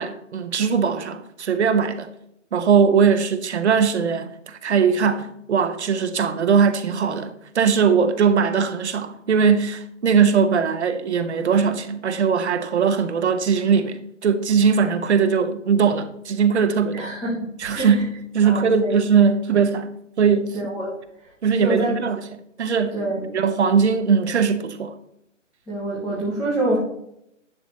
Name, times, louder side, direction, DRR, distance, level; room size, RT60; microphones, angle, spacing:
voice 1, 0.0-2.1 2.5-17.1 17.6-19.9 20.2-20.6 21.4-22.2 22.6-23.0 23.3-24.9, right 6 dB, 60° right, 1.3 m, -20 dB
voice 2, 16.9-17.4 17.7-18.0 18.4-19.3 20.5-20.9 21.6-21.9 22.9-23.3 25.7-26.8, right 1 dB, ahead, 0.5 m, -26 dB
11.5 x 8.0 x 2.9 m
figure-of-eight pair, 140°, 38 cm